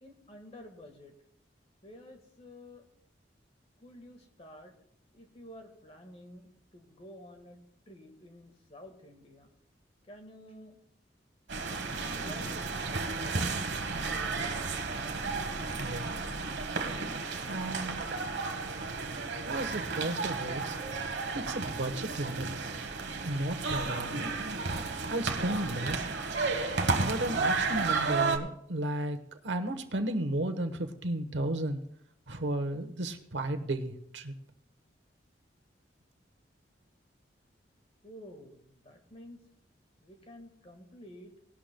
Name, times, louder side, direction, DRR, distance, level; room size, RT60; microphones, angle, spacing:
voice 1, 0.0-1.1 1.8-2.8 3.8-4.7 5.1-9.5 10.0-10.8 11.9-12.8 38.0-39.4 40.0-41.3, left 1 dB, 35° left, 5 dB, 1.6 m, -51 dB
sound 1, 11.5-28.4, right 4 dB, 70° right, 1.2 m, -33 dB
voice 2, 15.8-16.2 17.5-18.0 19.5-20.8 21.3-22.5 23.2-24.3 25.1-26.1 27.0-29.2 29.4-31.8 32.3-34.3, right 1 dB, 90° right, 9 dB, 1.1 m, -33 dB
18.5 x 11.5 x 2.3 m, 0.70 s
head